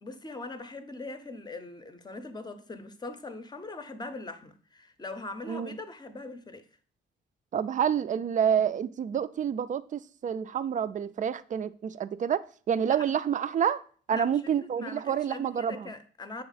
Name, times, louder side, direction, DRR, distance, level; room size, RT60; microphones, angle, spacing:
voice 1, 0.0-6.7 12.9-13.1 14.1-16.4, left 2 dB, 20° left, 0.7 m, -41 dB
voice 2, 7.5-13.8 14.1-15.9, right 8 dB, 40° right, 0.4 m, -28 dB
6.7 x 3.6 x 4.0 m
cardioid pair, 90°, 20 cm